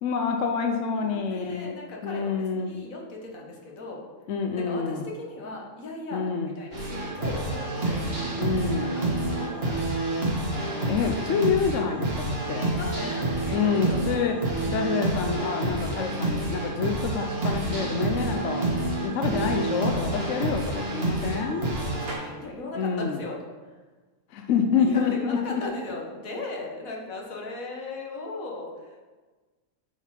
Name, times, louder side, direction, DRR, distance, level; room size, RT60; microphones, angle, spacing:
voice 1, 0.0-1.7 2.0-2.7 4.3-5.0 6.1-6.5 8.4-9.0 10.9-12.7 13.5-14.3 14.7-18.6 19.0-20.6 20.9-21.8 22.8-23.2 24.3-25.6, left 6 dB, 70° left, 4 dB, 1.0 m, -27 dB
voice 2, 0.9-4.1 4.5-6.3 6.6-8.0 8.7-10.2 12.4-14.4 21.8-23.8 24.7-29.0, left 2 dB, 90° left, -1 dB, 1.7 m, -38 dB
sound 1, 6.7-22.1, right 2 dB, 50° right, 1.6 m, -28 dB
8.9 x 4.0 x 4.4 m, 1.3 s
omnidirectional pair, 1.4 m